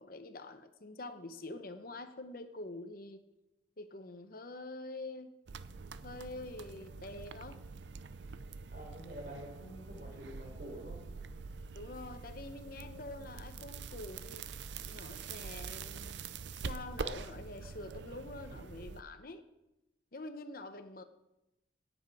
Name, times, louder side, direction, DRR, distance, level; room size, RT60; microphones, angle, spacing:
voice 1, 0.0-3.2 3.8-5.3 6.0-7.6 11.7-14.5 14.9-16.2 16.6-19.4 20.1-21.0, left 2 dB, 55° left, 9 dB, 0.9 m, -46 dB
sound 1, 5.5-19.0, right 5 dB, 75° right, 0.5 m, -45 dB
voice 2, 8.7-11.0, equal, 50° right, -1 dB, 5.1 m, -47 dB
17.5 x 8.0 x 4.9 m, 0.94 s
head